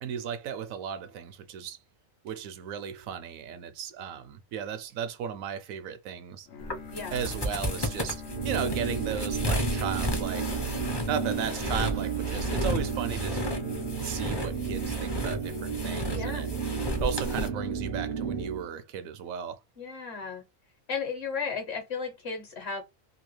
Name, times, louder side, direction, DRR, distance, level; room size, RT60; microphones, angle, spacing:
voice 1, 0.0-1.8 2.2-6.5 7.1-10.5 11.1-13.4 14.0-16.5 17.0-19.6, right 8 dB, 85° right, 1.0 m, -35 dB
Bowed string instrument, 6.5-14.7, left 4 dB, 70° left, 1.0 m, -44 dB
sound 1, 6.6-17.5, equal, 30° left, 0.5 m, -33 dB
sound 2, 8.3-18.7, right 6 dB, 55° right, 0.6 m, -32 dB
voice 2, 16.1-16.5 19.8-20.4 20.9-22.8, left 5 dB, 50° left, 1.2 m, -34 dB
3.0 x 2.4 x 3.1 m
omnidirectional pair, 1.4 m